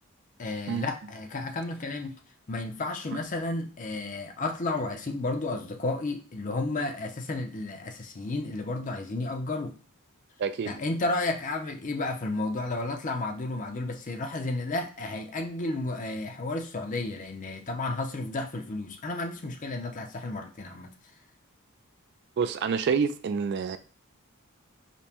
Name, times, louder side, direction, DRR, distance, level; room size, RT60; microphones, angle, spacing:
voice 1, 0.4-2.1 2.5-9.8 10.6-20.9, left 2 dB, 35° left, 0.5 m, -32 dB
voice 2, 10.4-10.7 22.4-23.8, right 6 dB, 50° right, 0.3 m, -27 dB
5.1 x 2.1 x 2.8 m
head